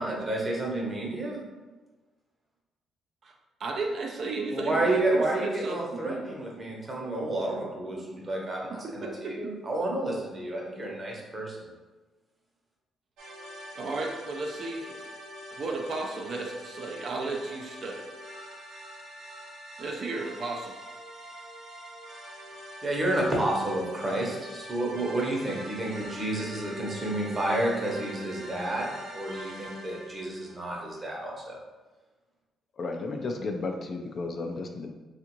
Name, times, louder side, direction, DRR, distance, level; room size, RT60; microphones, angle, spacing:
voice 1, 0.0-1.4 4.5-11.7 22.8-31.6, right 1 dB, 30° right, -2 dB, 0.9 m, -30 dB
voice 2, 3.6-6.2 7.9-8.0 8.8-9.3 13.8-15.0 15.5-18.1 19.8-20.7, right 3 dB, 55° right, 1 dB, 0.4 m, -34 dB
sound 1, 13.2-31.0, equal, 85° right, 0.7 m, -44 dB
voice 3, 32.8-34.9, left 3 dB, 50° left, 4 dB, 0.3 m, -33 dB
3.4 x 2.5 x 2.9 m, 1.2 s
cardioid pair, 90°, 0 cm